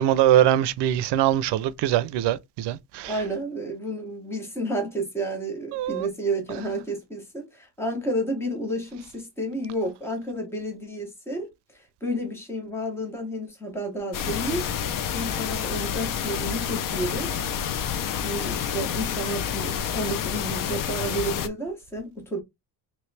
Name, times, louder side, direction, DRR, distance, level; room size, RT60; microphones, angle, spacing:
voice 1, 0.0-3.1 5.7-6.1, right 12 dB, 80° right, 0.5 m, -22 dB
voice 2, 3.1-14.6 15.1-17.4 18.2-22.4, right 1 dB, 5° left, 0.8 m, -31 dB
sound 1, 14.1-21.5, left 8 dB, 55° left, 0.5 m, -29 dB
3.1 x 3.0 x 3.2 m
cardioid pair, 175°, 41 cm